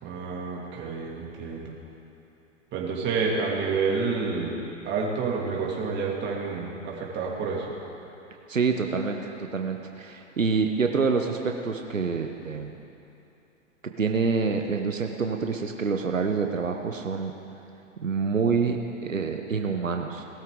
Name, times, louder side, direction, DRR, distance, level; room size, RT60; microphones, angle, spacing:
voice 1, 0.0-1.7 2.7-7.8, right 4 dB, 30° right, -2 dB, 2.7 m, -29 dB
voice 2, 8.5-12.7 14.0-17.3 18.0-20.2, right 5 dB, 90° right, 4 dB, 1.0 m, -27 dB
19.5 x 13.0 x 3.9 m, 2.9 s
figure-of-eight pair, 105°, 38 cm